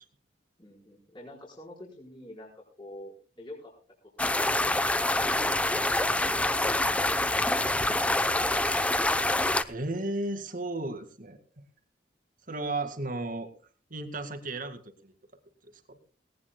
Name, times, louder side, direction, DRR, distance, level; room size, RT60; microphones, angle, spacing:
voice 1, 0.6-3.7 4.0-4.1, left 1 dB, 30° left, -3 dB, 4.6 m, -48 dB
sound 1, 4.2-9.6, left 1 dB, 10° left, 0.7 m, -26 dB
voice 2, 9.7-11.4 12.5-13.5 13.9-15.1 15.9-16.0, right 2 dB, 50° right, 8 dB, 2.0 m, -34 dB
18.5 x 18.5 x 2.2 m, 0.37 s
head